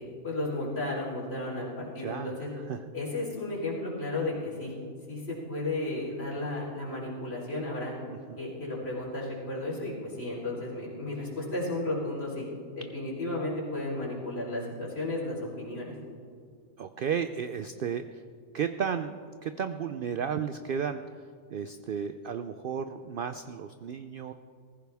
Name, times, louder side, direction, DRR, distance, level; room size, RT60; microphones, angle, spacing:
voice 1, 0.0-2.5 2.9-4.7 5.1-7.9 8.4-12.5 12.8-16.0, left 2 dB, 45° left, -6 dB, 4.1 m, -33 dB
voice 2, 1.8-2.3 2.7-2.8 8.1-8.4 16.8-18.2 18.5-21.0 21.5-24.3, right 7 dB, 65° right, 9 dB, 0.5 m, -33 dB
19.5 x 15.0 x 3.5 m, 2.1 s
omnidirectional pair, 1.4 m